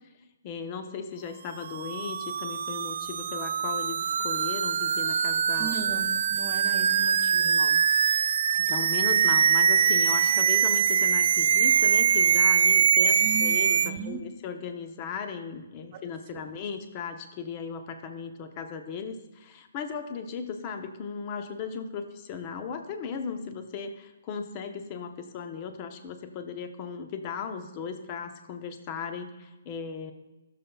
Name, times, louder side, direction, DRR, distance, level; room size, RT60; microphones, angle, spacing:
voice 1, 0.4-5.8 7.4-7.8 8.6-30.1, left 6 dB, 30° left, 6 dB, 0.8 m, -37 dB
sound 1, 1.6-13.9, right 7 dB, 60° right, 0.3 m, -23 dB
voice 2, 5.6-7.6 13.2-14.2 15.9-16.0 16.3-16.4, right 6 dB, 40° right, 5 dB, 1.2 m, -37 dB
17.0 x 6.7 x 2.3 m, 1.0 s
hypercardioid pair, 150°, 0 cm